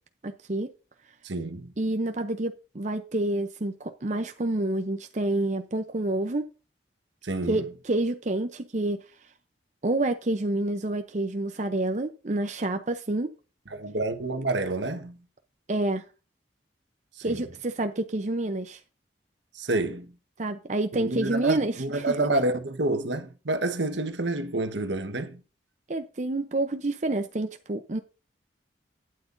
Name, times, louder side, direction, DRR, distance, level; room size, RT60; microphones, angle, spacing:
voice 1, 0.2-0.7 1.8-6.4 7.5-9.0 9.8-13.3 15.7-16.0 17.2-18.8 20.4-22.3 25.9-28.0, right 2 dB, 40° right, 0.7 m, -28 dB
voice 2, 1.2-1.7 7.2-7.6 13.7-15.2 17.2-17.4 19.5-20.1 20.9-25.4, right 2 dB, 75° right, 1.3 m, -28 dB
12.0 x 9.3 x 2.6 m
head